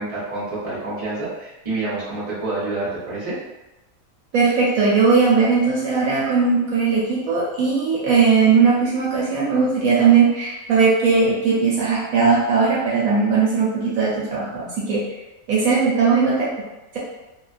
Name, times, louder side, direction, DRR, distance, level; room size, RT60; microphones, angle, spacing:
voice 1, 0.0-3.4, right 2 dB, 25° right, -9 dB, 0.9 m, -28 dB
voice 2, 4.3-15.2 15.5-16.5, right 5 dB, 70° right, -6 dB, 1.0 m, -18 dB
2.6 x 2.2 x 2.4 m, 1.0 s
omnidirectional pair, 1.6 m